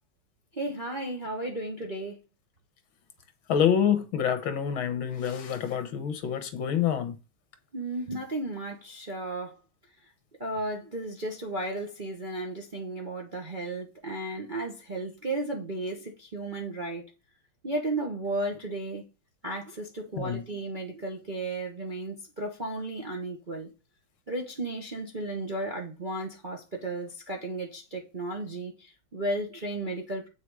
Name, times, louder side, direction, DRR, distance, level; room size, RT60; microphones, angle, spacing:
voice 1, 0.5-2.2 7.7-9.5 10.4-17.0 17.6-19.0 19.4-23.7 24.3-30.3, right 2 dB, 30° right, 1.1 m, -34 dB
voice 2, 3.5-7.2 20.2-20.4, left 8 dB, 70° left, 1.9 m, -27 dB
8.3 x 5.9 x 4.9 m
omnidirectional pair, 2.3 m